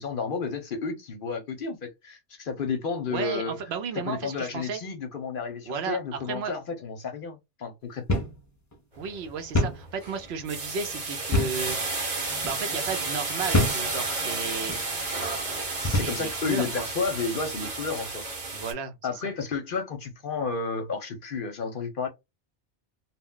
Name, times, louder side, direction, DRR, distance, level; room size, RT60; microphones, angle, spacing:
voice 1, 0.0-3.5 4.0-8.2 15.9-18.2 19.0-22.1, left 5 dB, 55° left, 0.7 m, -32 dB
voice 2, 3.1-4.8 5.7-6.0 6.2-6.5 9.0-11.8 12.4-14.8 15.8-16.9 18.5-19.0, right 5 dB, 70° right, 0.8 m, -33 dB
sound 1, 8.1-8.4 8.7-8.8 9.5-9.9 11.3-11.7 12.4-12.6 13.5-13.9 14.6-14.8 15.8-16.2, left 1 dB, 25° left, 0.4 m, -25 dB
sound 2, 9.0-9.3 9.7-18.7, right 3 dB, 45° right, 1.0 m, -32 dB
2.2 x 2.1 x 3.6 m
omnidirectional pair, 1.2 m